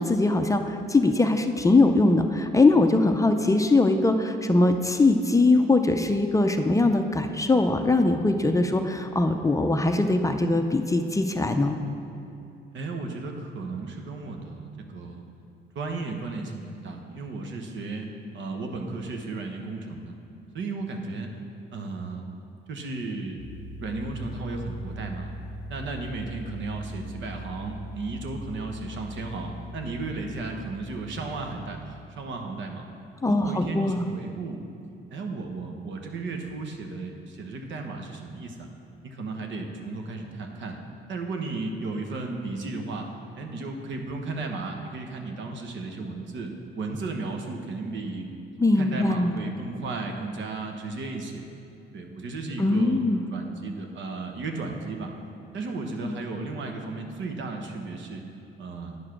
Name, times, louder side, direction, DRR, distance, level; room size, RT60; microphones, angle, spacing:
voice 1, 0.0-11.8 33.2-34.1 48.6-49.4 52.6-53.3 56.0-56.2, left 2 dB, 15° left, 6 dB, 0.5 m, -21 dB
voice 2, 12.7-15.2 15.7-20.1 20.5-21.3 21.7-22.3 22.7-23.4 23.8-25.3 25.7-32.9 33.3-34.6 35.1-38.7 39.0-40.8 41.1-43.1 43.3-48.3 48.8-51.4 51.9-53.0 53.3-55.1 55.5-58.2 58.6-59.0, right 3 dB, 70° right, 3 dB, 1.1 m, -34 dB
sound 1, 23.4-32.0, equal, 20° right, 1.5 m, -40 dB
9.8 x 4.8 x 6.0 m, 2.8 s
cardioid pair, 90°, 20 cm